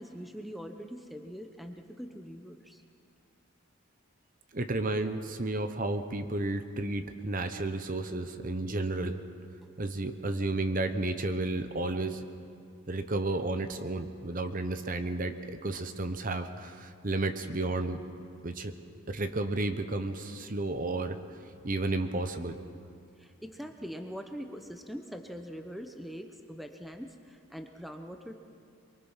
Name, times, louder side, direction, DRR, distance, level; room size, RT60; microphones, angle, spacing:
voice 1, 0.0-2.8 23.2-28.3, equal, ahead, 5 dB, 0.8 m, -43 dB
voice 2, 4.5-9.2 9.8-12.2 12.9-18.0 18.4-18.7 19.1-21.2 21.6-22.6, right 2 dB, 40° right, 9 dB, 0.9 m, -32 dB
23.5 x 23.0 x 5.7 m, 2.4 s
head